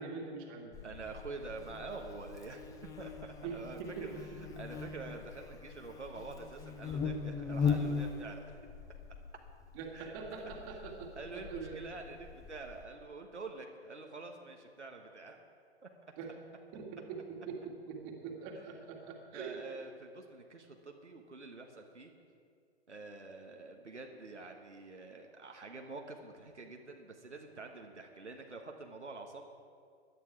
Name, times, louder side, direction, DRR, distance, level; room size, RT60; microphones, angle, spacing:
voice 1, 0.0-0.8 3.4-4.4 9.7-11.8 16.2-16.3 16.7-19.6, right 5 dB, 30° right, 1 dB, 2.2 m, -43 dB
Buzz, 0.7-12.8, left 5 dB, 10° left, 0.6 m, -40 dB
voice 2, 0.8-4.3 4.6-8.6 9.9-15.4 15.8-15.9 18.5-18.6 19.3-22.1 22.9-29.4, right 3 dB, 85° right, 2 dB, 1.5 m, -47 dB
16.5 x 11.5 x 4.7 m, 2.3 s
figure-of-eight pair, 115°, 34 cm